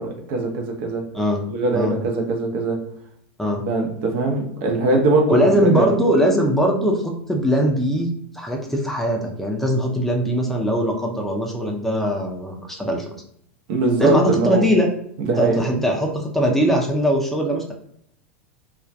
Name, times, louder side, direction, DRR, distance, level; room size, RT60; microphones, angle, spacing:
voice 1, 0.0-1.0 1.5-2.8 3.7-5.9 13.7-14.7 15.2-15.6, right 3 dB, 60° right, 1 dB, 0.6 m, -21 dB
voice 2, 5.3-8.1 8.3-13.1 14.0-14.9 15.4-17.7, equal, 5° left, 0 dB, 0.4 m, -21 dB
2.3 x 2.1 x 2.6 m, 0.70 s
hypercardioid pair, 85°, 7 cm